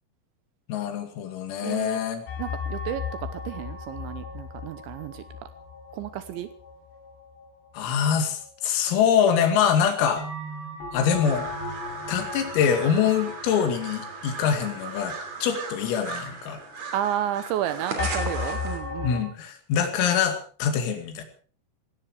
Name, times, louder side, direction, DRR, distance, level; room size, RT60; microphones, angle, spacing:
voice 1, 0.7-2.2 7.8-10.3 10.9-11.5 12.1-16.6 19.0-21.2, left 8 dB, 85° left, 7 dB, 5.1 m, -24 dB
voice 2, 1.6-2.0 2.4-5.2 5.9-6.5 16.9-19.2, right 11 dB, 75° right, 12 dB, 2.9 m, -31 dB
sound 1, 2.3-9.1 9.4-9.5 10.2-16.1 16.6-16.7 18.0-19.2, left 4 dB, 55° left, 5.5 m, -36 dB
sound 2, 11.2-18.8, right 5 dB, 40° right, 3.2 m, -37 dB
17.5 x 17.0 x 4.9 m, 0.42 s
omnidirectional pair, 5.9 m